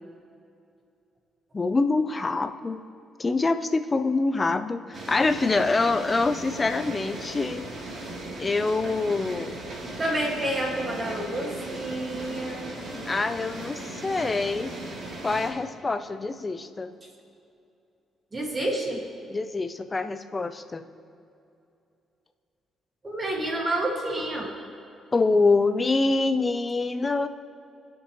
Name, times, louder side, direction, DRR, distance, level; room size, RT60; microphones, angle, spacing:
voice 1, 1.5-2.8 3.2-7.7 8.4-9.6 13.1-14.8 15.2-16.9 19.3-20.8 25.1-27.3, left 3 dB, 25° left, 9 dB, 0.7 m, -25 dB
sound 1, 4.9-15.5, right 1 dB, 50° right, 3.3 m, -37 dB
voice 2, 10.0-12.7 18.3-19.0 23.0-24.5, right 1 dB, 30° right, -1 dB, 2.2 m, -29 dB
23.0 x 8.1 x 3.2 m, 2.7 s
cardioid pair, 90°, 0 cm